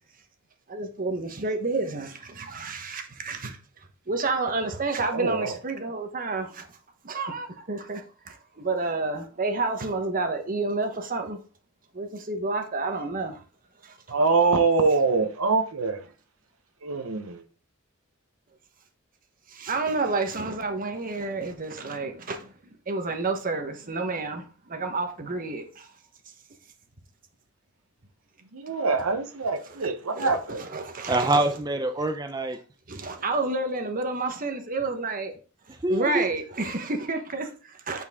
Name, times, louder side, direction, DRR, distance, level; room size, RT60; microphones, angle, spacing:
voice 1, 0.7-3.6 4.1-6.7 7.0-11.4 11.9-13.4 13.8-14.0 19.5-22.5 22.9-25.9 29.8-31.4 32.9-35.3 35.7-38.0, right 3 dB, 40° right, 1.1 m, -30 dB
voice 2, 5.1-5.5 14.1-16.0 16.8-17.4 28.5-30.6, right 4 dB, 80° right, 0.9 m, -24 dB
voice 3, 31.1-32.6 35.7-36.2, right 2 dB, 20° right, 0.5 m, -25 dB
8.2 x 4.6 x 3.6 m
head